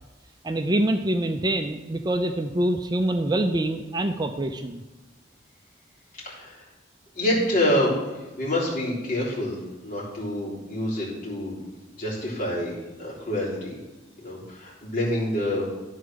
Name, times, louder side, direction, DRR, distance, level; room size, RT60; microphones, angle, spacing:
voice 1, 0.4-4.8, right 1 dB, 20° right, 6 dB, 0.4 m, -25 dB
voice 2, 6.2-6.6 7.1-9.6 9.8-11.6 12.0-12.7 13.0-13.7 14.2-15.7, left 1 dB, 50° left, -6 dB, 3.5 m, -27 dB
12.0 x 4.6 x 6.2 m, 1.2 s
head